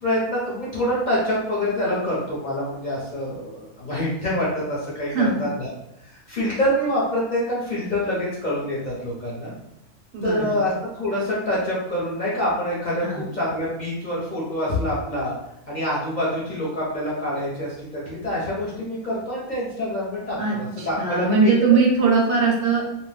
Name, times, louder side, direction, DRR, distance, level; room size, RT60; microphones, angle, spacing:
voice 1, 0.0-5.7 6.0-9.5 10.2-15.3 15.7-21.5 22.0-22.1, left 1 dB, 45° left, -7 dB, 0.7 m, -26 dB
voice 2, 10.1-10.6 13.0-13.2 20.4-22.8, right 4 dB, 65° right, -1 dB, 0.8 m, -20 dB
2.6 x 2.0 x 3.2 m, 0.82 s
omnidirectional pair, 1.4 m